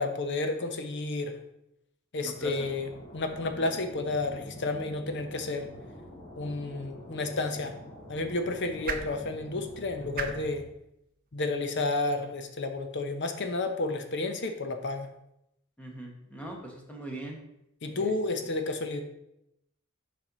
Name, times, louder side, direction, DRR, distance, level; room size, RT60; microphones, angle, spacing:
voice 1, 0.0-1.3 2.1-5.7 6.4-7.7 8.1-10.6 11.3-15.1 17.8-19.0, left 2 dB, 55° left, 7 dB, 0.8 m, -31 dB
voice 2, 2.2-2.7 15.8-17.4 17.9-18.1, right 1 dB, 5° left, 0 dB, 1.1 m, -41 dB
sound 1, 2.3-10.6, equal, 35° left, 2.6 m, -46 dB
sound 2, 7.0-13.3, right 5 dB, 45° right, 0.7 m, -43 dB
7.3 x 5.2 x 3.9 m, 0.81 s
head